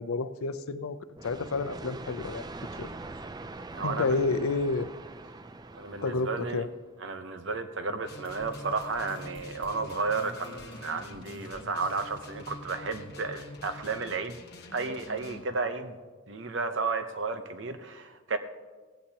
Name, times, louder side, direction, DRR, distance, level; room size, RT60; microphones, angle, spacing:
voice 1, 0.0-2.5 2.8-2.9 3.8-4.9 6.0-6.7, left 3 dB, 90° left, 13 dB, 0.5 m, -30 dB
sound 1, 1.2-6.9, right 2 dB, 20° right, 0.4 m, -43 dB
voice 2, 3.7-4.2 5.7-6.7 7.0-14.4 14.7-16.0 16.3-18.4, right 4 dB, 60° right, 9 dB, 0.8 m, -33 dB
sound 2, 8.0-15.5, left 2 dB, 50° left, 1.1 m, -46 dB
sound 3, 8.2-12.4, left 1 dB, 25° left, 2.1 m, -53 dB
17.0 x 15.5 x 2.9 m, 1.4 s
head